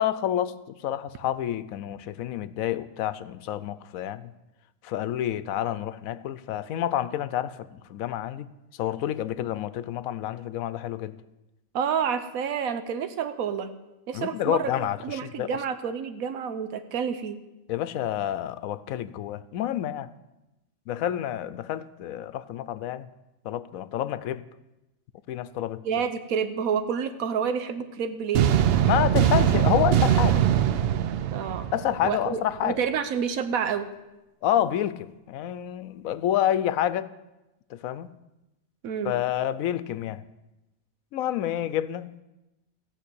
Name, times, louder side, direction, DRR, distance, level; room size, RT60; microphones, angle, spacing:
voice 1, 0.0-4.3 4.8-8.5 8.8-11.2 14.1-15.6 17.7-20.1 20.9-23.1 23.4-24.4 25.3-25.8 28.8-30.4 31.7-32.8 34.4-37.1 37.7-38.1 39.0-40.2 41.1-42.2, left 11 dB, 90° left, 1.0 m, -28 dB
voice 2, 11.7-13.7 14.1-17.4 25.8-28.5 31.3-31.7 32.0-33.9 38.8-39.1, right 7 dB, 90° right, 1.2 m, -29 dB
sound 1, 28.3-32.3, right 10 dB, 60° right, 0.7 m, -22 dB
15.0 x 5.4 x 8.5 m
omnidirectional pair, 1.4 m